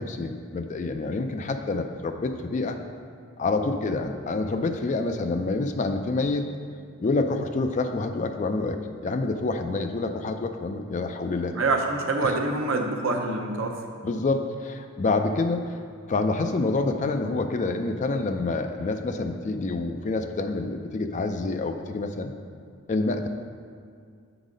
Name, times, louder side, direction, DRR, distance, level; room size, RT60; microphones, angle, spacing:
voice 1, 0.0-2.8 3.4-6.5 7.0-11.6 12.2-12.3 14.0-15.8 16.1-22.3 22.9-23.3, left 3 dB, 35° left, 6 dB, 0.3 m, -27 dB
voice 2, 11.5-13.8, right 3 dB, 65° right, 2 dB, 0.7 m, -26 dB
7.2 x 4.0 x 5.0 m, 2.2 s
head